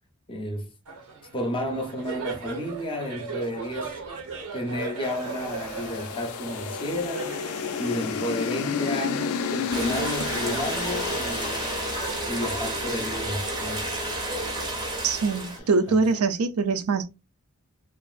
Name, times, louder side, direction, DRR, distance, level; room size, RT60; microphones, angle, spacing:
voice 1, 0.3-0.7 1.3-4.3 4.5-7.4 7.8-11.7 12.3-14.0 15.9-16.0, left 1 dB, 25° left, 0.6 m, -32 dB
Laughter, 0.9-15.9, right 4 dB, 90° right, 0.8 m, -39 dB
sound 1, 5.0-15.4, left 6 dB, 75° left, 0.4 m, -33 dB
sound 2, 9.7-15.6, right 1 dB, 20° right, 0.6 m, -31 dB
voice 2, 15.0-17.1, right 4 dB, 70° right, 0.4 m, -23 dB
2.9 x 2.5 x 2.3 m
head